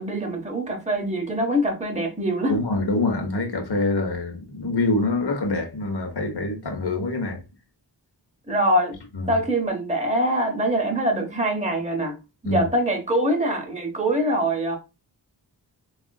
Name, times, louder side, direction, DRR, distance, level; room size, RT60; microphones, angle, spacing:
voice 1, 0.0-2.5 8.5-9.0 9.3-12.1 12.4-14.8, right 1 dB, 15° right, 0.8 m, -24 dB
voice 2, 2.5-7.4 9.1-9.4 12.4-12.7, left 2 dB, 65° left, 0.9 m, -25 dB
3.6 x 2.3 x 2.2 m
wide cardioid pair, 45°, 43 cm